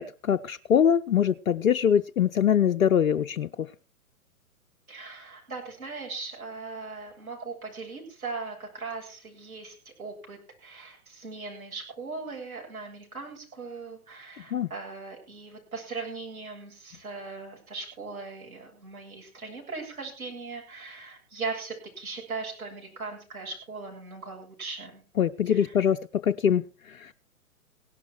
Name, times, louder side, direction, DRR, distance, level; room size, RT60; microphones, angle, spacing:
voice 1, 0.0-3.7 14.5-14.7 25.2-27.1, left 8 dB, 70° left, 9 dB, 0.7 m, -23 dB
voice 2, 4.9-25.0 25.5-25.9, right 4 dB, 70° right, 0 dB, 8.0 m, -39 dB
17.0 x 11.5 x 4.7 m, 0.36 s
figure-of-eight pair, 120°, 43 cm